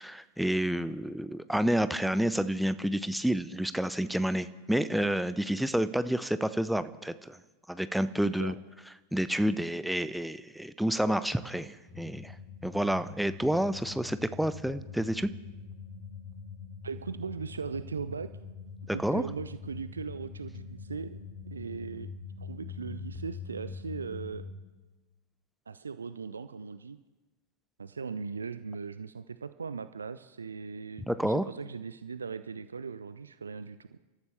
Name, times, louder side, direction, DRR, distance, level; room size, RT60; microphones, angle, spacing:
voice 1, 0.0-7.4 7.7-8.5 9.1-12.3 12.6-15.3 18.9-19.2 31.1-31.4, right 1 dB, ahead, 13 dB, 0.6 m, -29 dB
sound 1, 11.9-24.5, left 5 dB, 20° left, 2.6 m, -44 dB
voice 2, 16.8-18.3 18.9-21.2 21.4-22.1 22.4-24.5 25.7-27.0 27.8-34.0, right 5 dB, 75° right, 13 dB, 0.5 m, -39 dB
28.0 x 13.5 x 3.4 m, 1.2 s
figure-of-eight pair, 90°, 0 cm